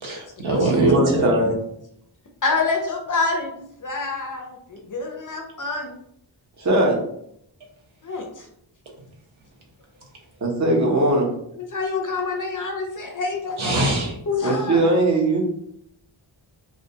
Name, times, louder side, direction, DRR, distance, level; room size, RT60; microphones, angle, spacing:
voice 1, 0.0-1.4 13.6-14.1, right 1 dB, 75° right, -1 dB, 0.8 m, -23 dB
voice 2, 0.6-1.5 6.6-7.0 10.4-11.3 14.4-15.4, right 2 dB, 35° right, -1 dB, 0.6 m, -19 dB
voice 3, 2.4-6.0 8.0-8.5 11.6-13.9 14.3-14.9, left 4 dB, 45° left, 2 dB, 0.4 m, -27 dB
2.3 x 2.1 x 2.7 m, 0.73 s
wide cardioid pair, 100°, 48 cm